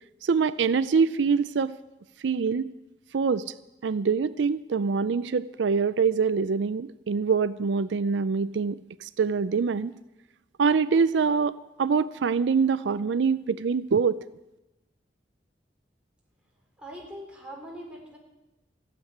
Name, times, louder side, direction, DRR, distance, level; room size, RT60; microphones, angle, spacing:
voice 1, 0.2-1.7 2.2-2.7 3.1-3.5 3.8-9.9 10.6-14.2, right 5 dB, 80° right, 16 dB, 0.4 m, -24 dB
voice 2, 16.8-18.2, equal, 5° right, -2 dB, 3.9 m, -42 dB
15.5 x 8.2 x 9.8 m, 0.98 s
head